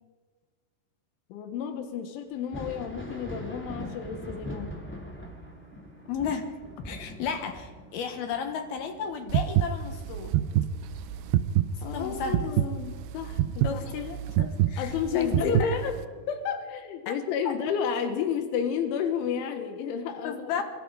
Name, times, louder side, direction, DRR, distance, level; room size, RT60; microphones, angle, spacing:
voice 1, 1.3-4.8 11.8-13.8 14.8-15.9 16.3-20.5, left 7 dB, 85° left, 7 dB, 3.8 m, -31 dB
Thunder, 2.4-11.7 12.1-13.3 14.9-15.0 15.7-15.9, equal, 5° left, 1.5 m, -42 dB
sound 1, 4.3-16.3, right 3 dB, 55° right, 4.8 m, -56 dB
voice 2, 6.1-6.5 6.8-10.3 11.9-12.5 13.6-15.7 17.1-17.2 17.5-17.6 20.2-20.6, left 6 dB, 65° left, 6 dB, 2.9 m, -33 dB
sound 2, 9.3-16.0, right 12 dB, 80° right, 2.3 m, -26 dB
24.5 x 23.0 x 5.0 m, 1.4 s
omnidirectional pair, 5.4 m